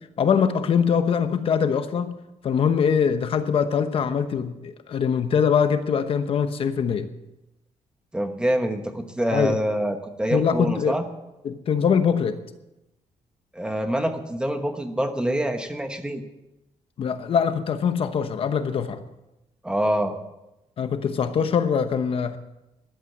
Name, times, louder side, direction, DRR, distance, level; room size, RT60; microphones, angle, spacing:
voice 1, 0.2-2.2 2.4-7.1 9.3-9.6 10.3-11.0 11.4-12.4 17.0-19.0 20.8-22.4, left 7 dB, 50° left, 9 dB, 0.9 m, -23 dB
voice 2, 8.1-11.0 13.5-16.2 19.6-20.1, right 1 dB, 10° right, 6 dB, 1.1 m, -25 dB
14.0 x 11.5 x 7.3 m, 0.94 s
wide cardioid pair, 180°, 12 cm